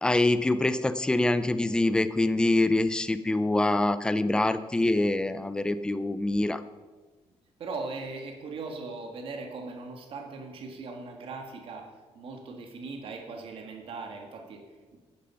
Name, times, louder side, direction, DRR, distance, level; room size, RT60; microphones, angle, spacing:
voice 1, 0.0-6.6, left 2 dB, 5° left, 12 dB, 0.4 m, -25 dB
voice 2, 7.6-15.0, right 3 dB, 50° right, 3 dB, 1.7 m, -39 dB
10.5 x 10.5 x 5.6 m, 1.3 s
cardioid pair, 175°, 12 cm